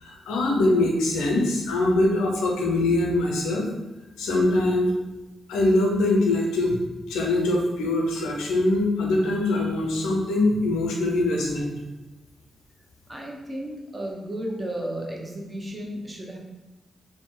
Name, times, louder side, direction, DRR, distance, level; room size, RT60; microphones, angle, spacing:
voice 1, 0.0-3.7 4.2-4.9 5.5-6.8 7.1-11.8, left 2 dB, 85° left, -1 dB, 0.6 m, -23 dB
voice 2, 13.1-16.4, right 1 dB, 25° right, 0 dB, 0.7 m, -33 dB
2.6 x 2.1 x 3.7 m, 1.1 s
supercardioid pair, 45°, 0 cm